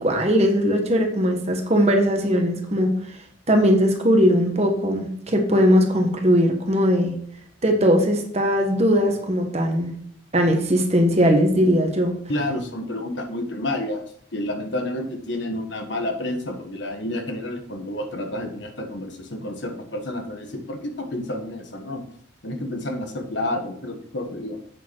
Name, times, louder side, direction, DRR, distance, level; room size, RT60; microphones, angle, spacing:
voice 1, 0.0-2.9 3.5-7.1 7.6-9.9 10.3-12.1, equal, 35° right, 3 dB, 1.4 m, -19 dB
voice 2, 12.3-14.0 14.3-22.0 22.4-24.6, left 1 dB, 65° left, 5 dB, 1.5 m, -29 dB
8.3 x 7.0 x 4.7 m, 0.63 s
head